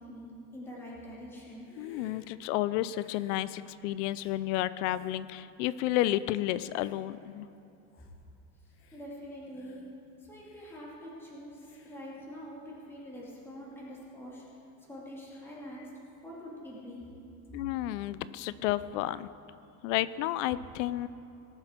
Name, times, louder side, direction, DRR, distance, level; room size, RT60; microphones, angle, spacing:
voice 1, 0.0-1.7 8.0-8.1 8.6-9.8 10.2-14.4 14.8-15.9 16.2-17.1, equal, 5° left, -6 dB, 2.5 m, -45 dB
Hiss, 1.5-2.3 2.9-3.5 4.1-4.4 4.9-5.2 5.9-6.2 6.7-7.0 7.6-7.7 7.9-8.2 8.7-9.1 9.5-9.9 10.4-10.8 11.6-12.0, left 4 dB, 35° left, 1.2 m, -58 dB
voice 2, 1.8-7.5 17.5-19.3 19.8-21.1, left 14 dB, 80° left, 16 dB, 0.5 m, -31 dB
19.0 x 7.7 x 4.5 m, 2.7 s
cardioid pair, 150°, 37 cm